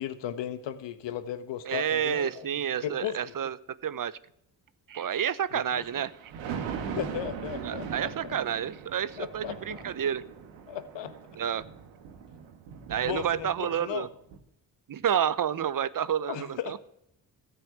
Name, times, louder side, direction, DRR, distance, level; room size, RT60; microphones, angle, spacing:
voice 1, 0.0-2.5 2.8-3.3 5.5-5.8 7.0-8.3 9.2-9.8 10.7-11.1 13.0-14.1 16.3-16.7, left 10 dB, 75° left, 11 dB, 1.3 m, -36 dB
voice 2, 1.7-3.6 3.8-4.2 4.9-6.1 7.6-10.2 11.4-11.6 12.9-14.1 14.9-16.8, right 9 dB, 45° right, 17 dB, 0.9 m, -29 dB
Thunder, 5.6-13.9 14.3-14.4, right 7 dB, 85° right, 1.5 m, -40 dB
13.5 x 6.8 x 9.4 m, 0.75 s
supercardioid pair, 50°, 44 cm